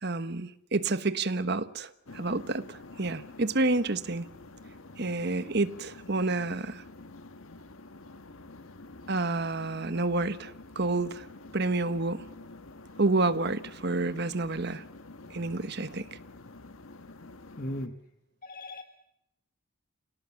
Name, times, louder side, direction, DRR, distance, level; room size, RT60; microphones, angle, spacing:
voice 1, 0.0-4.3 5.0-6.8 9.1-11.3 11.5-12.2 13.0-14.8 15.3-16.1, right 2 dB, 55° right, 1.3 m, -29 dB
sound 1, 2.1-17.9, left 2 dB, 85° left, 1.5 m, -48 dB
voice 2, 17.6-17.9 18.4-18.8, left 1 dB, 45° left, 1.5 m, -36 dB
29.0 x 18.5 x 7.2 m
head